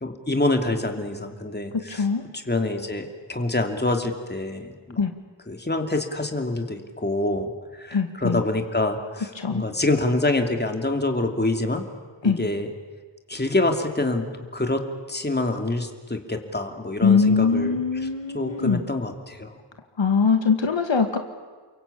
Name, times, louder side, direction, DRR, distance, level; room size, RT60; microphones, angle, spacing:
voice 1, 0.0-2.1 2.3-5.0 5.5-11.8 12.2-12.7 13.3-14.3 14.5-14.8 15.1-17.8 18.3-19.6, left 2 dB, 20° left, 4 dB, 2.8 m, -26 dB
voice 2, 1.7-2.2 5.0-5.1 7.9-8.4 9.4-9.7 12.2-12.4 17.0-18.8 20.0-21.2, left 5 dB, 70° left, 6 dB, 2.0 m, -22 dB
29.5 x 23.0 x 8.5 m, 1.4 s
wide cardioid pair, 95°, 47 cm